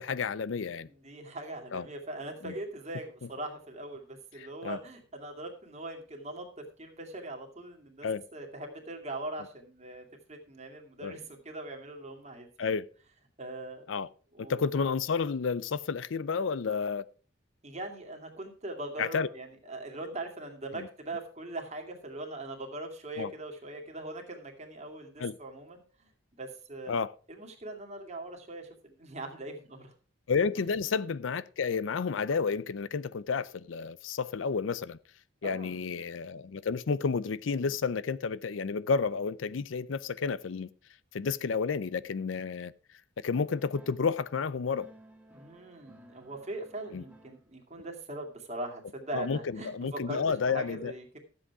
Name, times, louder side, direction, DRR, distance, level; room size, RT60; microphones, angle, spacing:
voice 1, 0.0-0.9 1.7-1.9 2.4-2.5 4.4-4.8 8.0-8.2 11.0-11.1 12.6-12.9 13.9-14.1 14.4-17.1 19.0-19.3 20.7-20.9 23.2-23.3 25.2-25.3 26.9-27.1 30.3-35.0 35.4-40.7 41.1-42.7 43.2-44.9 46.9-47.0 49.1-49.4 49.6-50.9, left 5 dB, 85° left, 0.5 m, -31 dB
voice 2, 0.8-6.5 6.8-12.8 13.4-13.9 14.3-14.7 17.6-27.0 27.3-29.9 35.4-35.8 45.3-51.2, right 2 dB, 35° right, 2.3 m, -41 dB
sound 1, 43.4-44.1 44.6-47.7, right 1 dB, 5° right, 1.4 m, -57 dB
13.0 x 7.8 x 4.7 m
head